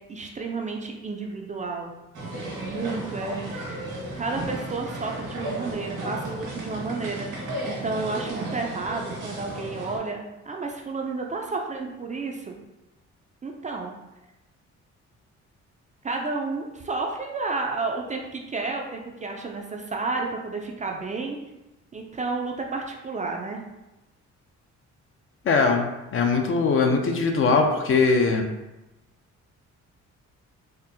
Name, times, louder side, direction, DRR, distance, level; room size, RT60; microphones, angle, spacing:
voice 1, 0.1-1.9 2.6-3.8 4.2-12.5 13.4-13.9 16.0-21.4 21.9-23.6, right 3 dB, 25° right, 1 dB, 0.4 m, -31 dB
sound 1, 2.1-10.0, right 1 dB, 90° right, 1.4 m, -34 dB
voice 2, 25.4-28.5, left 4 dB, 45° left, 4 dB, 0.5 m, -21 dB
4.2 x 2.0 x 2.7 m, 0.99 s
cardioid pair, 90°, 30 cm